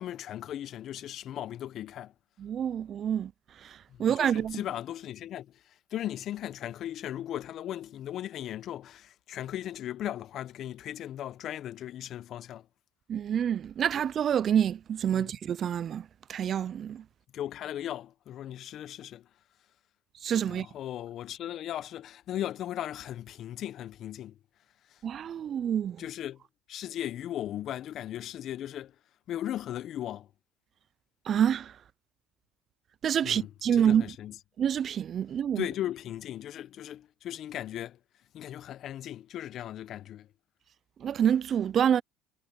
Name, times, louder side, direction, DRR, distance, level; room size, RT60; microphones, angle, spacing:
voice 1, 0.0-2.1 4.0-5.5 5.9-12.7 15.1-15.3 17.3-19.3 20.5-24.4 24.9-25.0 26.0-26.4 26.7-28.9 29.3-30.3 33.2-34.4 35.6-38.0 38.3-40.3, left 12 dB, 55° left, 1.3 m, -37 dB
voice 2, 2.4-3.3 3.6-4.6 13.1-17.0 20.2-20.7 25.0-26.0 31.3-31.7 33.0-34.0 34.6-35.7 41.0-42.0, right 9 dB, 45° right, 0.6 m, -27 dB
hypercardioid pair, 75°, 0 cm